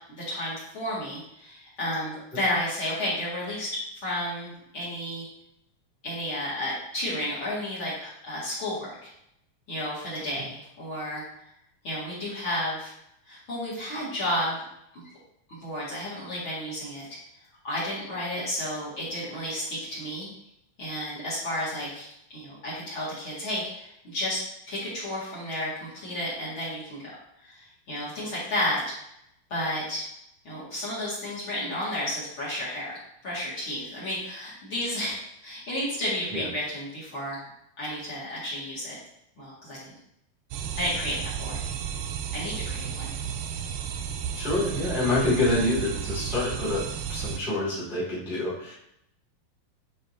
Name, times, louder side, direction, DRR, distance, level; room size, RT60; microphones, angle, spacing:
voice 1, 0.1-5.3 6.0-9.1 9.7-11.2 11.8-12.9 13.3-14.6 14.9-15.0 15.5-17.1 17.6-20.3 20.8-22.1 22.3-24.4 24.7-27.0 27.4-28.8 29.5-30.0 30.4-37.4 37.8-39.0 39.4-39.8 40.8-41.6 42.3-43.1, left 1 dB, 40° left, -7 dB, 2.3 m, -32 dB
sound 1, 40.5-47.4, right 8 dB, 80° right, 2.2 m, -33 dB
voice 2, 44.3-48.7, left 2 dB, ahead, -8 dB, 1.2 m, -27 dB
8.7 x 5.3 x 2.7 m, 0.78 s
omnidirectional pair, 4.4 m